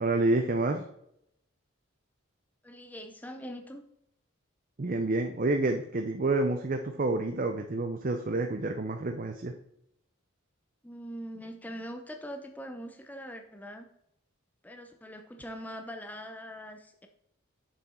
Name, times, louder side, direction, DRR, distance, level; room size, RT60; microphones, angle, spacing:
voice 1, 0.0-0.9 4.8-9.5, right 2 dB, 40° right, 5 dB, 0.6 m, -28 dB
voice 2, 2.6-3.8 10.8-13.9 14.6-17.1, equal, 10° left, 5 dB, 0.7 m, -42 dB
7.0 x 5.9 x 4.4 m, 0.76 s
head